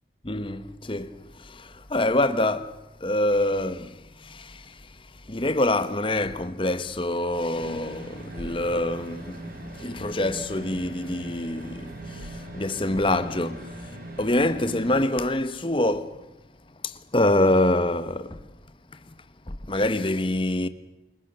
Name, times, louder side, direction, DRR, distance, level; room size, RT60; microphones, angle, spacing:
voice 1, 0.2-16.2 16.8-18.4 19.1-19.2 19.5-20.7, left 1 dB, 30° left, 1.2 m, -26 dB
sound 1, 7.5-15.0, right 1 dB, 50° right, 5.2 m, -40 dB
28.0 x 22.0 x 6.8 m
head